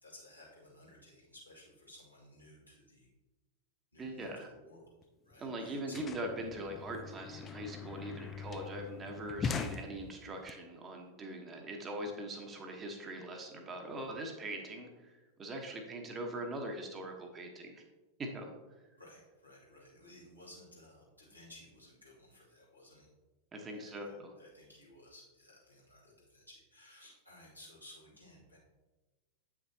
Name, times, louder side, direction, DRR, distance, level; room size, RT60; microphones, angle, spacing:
voice 1, 0.0-3.1 3.9-5.0 5.2-6.0 19.0-23.1 23.7-28.6, left 1 dB, 85° left, -6 dB, 2.5 m, -57 dB
voice 2, 4.0-4.5 5.4-15.1 15.4-17.8 18.2-18.5 23.5-24.3, right 1 dB, 20° right, 3 dB, 1.2 m, -42 dB
sound 1, 5.0-5.1 5.3-10.5, left 5 dB, 25° left, 0.5 m, -42 dB
8.7 x 6.1 x 2.8 m, 1.1 s
figure-of-eight pair, 90°, 0 cm